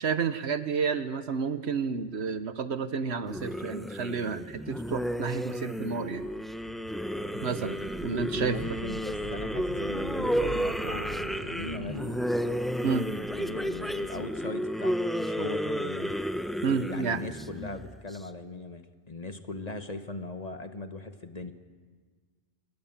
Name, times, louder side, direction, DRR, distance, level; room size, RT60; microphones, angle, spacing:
voice 1, 0.0-6.3 7.4-8.6 12.8-13.1 16.6-17.2, right 5 dB, 70° right, 11 dB, 1.3 m, -30 dB
sound 1, 3.3-18.2, equal, ahead, 0.6 m, -32 dB
sound 2, 6.2-14.5, right 2 dB, 50° right, 1.8 m, -44 dB
voice 2, 8.3-12.3 13.4-16.2 16.9-21.5, left 2 dB, 35° left, 8 dB, 1.4 m, -39 dB
27.0 x 22.5 x 7.4 m, 1.5 s
omnidirectional pair, 1.2 m